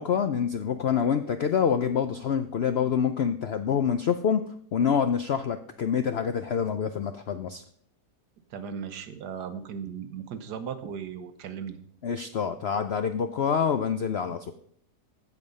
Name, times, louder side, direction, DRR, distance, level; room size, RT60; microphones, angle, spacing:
voice 1, 0.0-4.4 4.7-7.6 12.0-14.5, left 7 dB, 70° left, 9 dB, 0.6 m, -26 dB
voice 2, 8.5-11.8, right 7 dB, 80° right, 10 dB, 1.6 m, -37 dB
15.0 x 5.3 x 5.4 m, 0.63 s
omnidirectional pair, 1.7 m